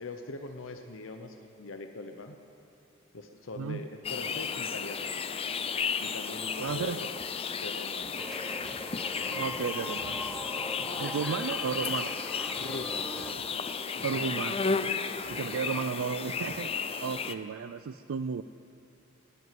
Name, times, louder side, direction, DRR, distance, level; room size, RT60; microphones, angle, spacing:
voice 1, 0.0-2.4 3.1-5.1 6.0-7.1 7.5-8.2 9.2-9.5 12.5-13.2 13.9-14.3, left 2 dB, 75° left, 5 dB, 0.9 m, -42 dB
sound 1, 4.0-17.3, left 5 dB, 30° left, 0.5 m, -33 dB
voice 2, 6.6-7.0 9.3-10.2 10.8-12.1 14.0-15.0 15.3-16.7 17.0-18.4, right 6 dB, 90° right, 11 dB, 0.4 m, -33 dB
sound 2, 8.2-13.3, equal, ahead, 1.1 m, -41 dB
19.0 x 8.1 x 9.3 m, 2.8 s
head